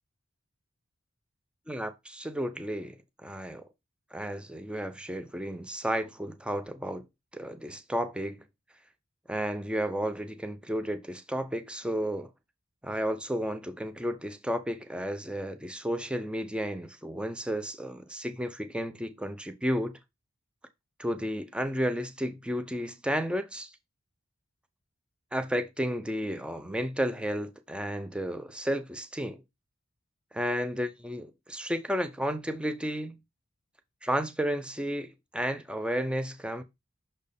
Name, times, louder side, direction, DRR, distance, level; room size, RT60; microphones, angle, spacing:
voice 1, 1.7-3.7 4.1-7.0 7.3-8.4 9.3-12.3 12.8-19.9 21.0-23.7 25.3-29.4 30.3-33.2 34.0-36.6, equal, 5° right, 0.5 m, -32 dB
6.3 x 4.4 x 3.4 m
head